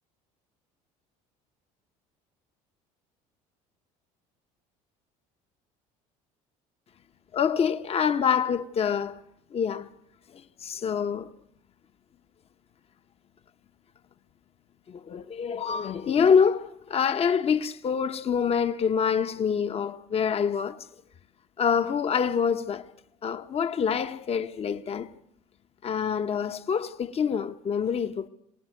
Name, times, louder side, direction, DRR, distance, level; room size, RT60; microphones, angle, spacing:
voice 1, 7.3-9.2 9.5-9.9 10.3-11.3 14.9-20.9 21.6-22.8 23.2-25.1 25.8-28.3, left 7 dB, 40° left, 1.0 m, -26 dB
24.5 x 19.0 x 6.6 m
supercardioid pair, 85°, 16 cm